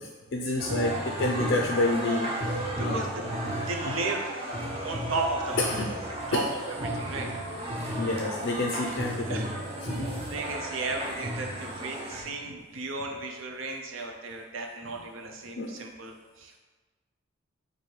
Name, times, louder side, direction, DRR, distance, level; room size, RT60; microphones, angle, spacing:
voice 1, 0.3-3.0 4.0-4.1 5.6-5.9 6.3-6.4 7.9-9.5 9.8-10.1 15.6-15.7, left 2 dB, 55° left, -1 dB, 0.4 m, -29 dB
sound 1, 0.6-12.2, right 1 dB, 30° right, 0.6 m, -33 dB
voice 2, 2.8-3.3 3.7-4.2 4.8-5.8 6.3-7.3 7.8-8.2 9.2-9.5 9.9-16.6, right 3 dB, 75° right, 2 dB, 0.5 m, -35 dB
3.2 x 2.6 x 4.4 m, 1.3 s
head